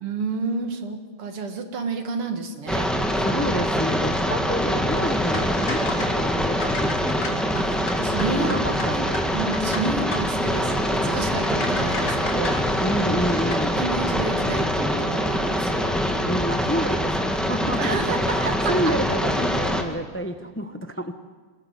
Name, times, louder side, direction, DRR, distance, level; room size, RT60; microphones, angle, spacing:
voice 1, 0.0-2.9 7.5-8.9 9.3-12.6 13.8-15.9 17.8-18.4 18.6-18.7, right 4 dB, 90° right, 6 dB, 2.8 m, -30 dB
sound 1, 2.7-19.8, equal, ahead, 1.8 m, -24 dB
voice 2, 3.2-7.3 8.3-9.3 12.8-13.8 16.3-21.1, equal, 20° left, 8 dB, 0.3 m, -29 dB
sound 2, 4.9-13.7, left 2 dB, 50° left, 3.3 m, -36 dB
24.0 x 20.0 x 8.2 m, 1.4 s
omnidirectional pair, 2.4 m